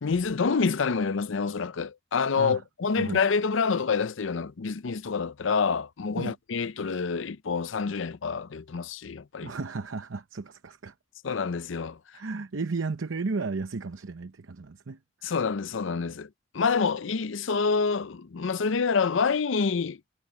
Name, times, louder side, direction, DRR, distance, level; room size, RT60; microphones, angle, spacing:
voice 1, 0.0-9.5 11.2-12.0 15.2-16.3 16.5-20.0, left 5 dB, 80° left, 0.6 m, -27 dB
voice 2, 9.4-10.9 12.1-15.3, right 4 dB, 85° right, 0.8 m, -34 dB
head